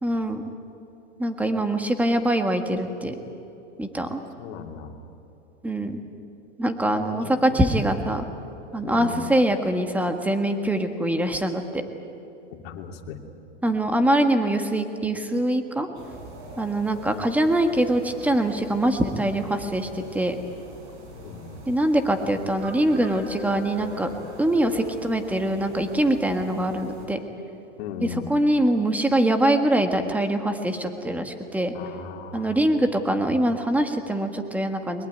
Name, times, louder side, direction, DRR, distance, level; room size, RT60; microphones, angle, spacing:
voice 1, 0.0-0.4 1.2-3.1 3.8-4.2 5.6-6.0 6.6-8.2 8.7-11.8 13.6-15.9 16.6-20.3 21.7-24.1 24.4-27.2 28.3-31.7 32.3-35.1, right 1 dB, 5° right, 6 dB, 1.6 m, -23 dB
voice 2, 4.4-5.0 6.9-7.6 8.8-9.2 12.5-13.2 21.1-21.7 27.8-28.3 31.7-33.0, left 7 dB, 55° left, 3 dB, 2.9 m, -38 dB
sound 1, 15.9-27.1, right 1 dB, 55° right, 7.7 m, -42 dB
22.5 x 21.5 x 9.4 m, 3.0 s
supercardioid pair, 140°, 36 cm